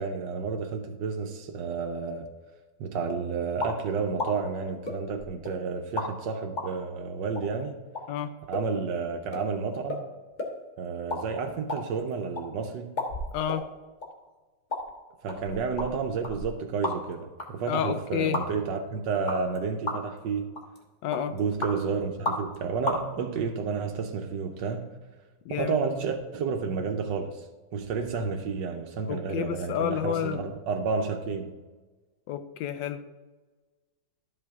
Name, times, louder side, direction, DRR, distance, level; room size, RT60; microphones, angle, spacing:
voice 1, 0.0-2.3 2.8-7.8 8.5-10.1 10.8-13.0 15.2-20.5 21.3-24.9 25.6-27.5 27.7-31.6, right 5 dB, 80° right, 1.4 m, -31 dB
sound 1, 3.6-3.8 4.2-4.3 4.8-5.5 6.0-6.1 6.6-6.7 7.3-7.4 7.9-8.0 8.5-8.7 8.9-9.0 9.3-9.4 9.9-10.0 10.4-10.5 10.9-11.2 11.5-12.4 13.0-13.6 14.0-14.1 14.7-14.8 15.3-17.1 17.4-17.5 18.3-18.4 19.3-19.6 19.9-20.2 20.5-20.8 21.1-21.7 22.2-22.6 22.8-23.0, left 2 dB, 30° left, 1.2 m, -32 dB
voice 2, 13.3-13.6 17.7-18.4 21.0-21.4 25.4-25.8 29.1-30.4 32.3-33.0, left 9 dB, 85° left, 1.3 m, -30 dB
12.0 x 5.6 x 3.5 m
omnidirectional pair, 2.0 m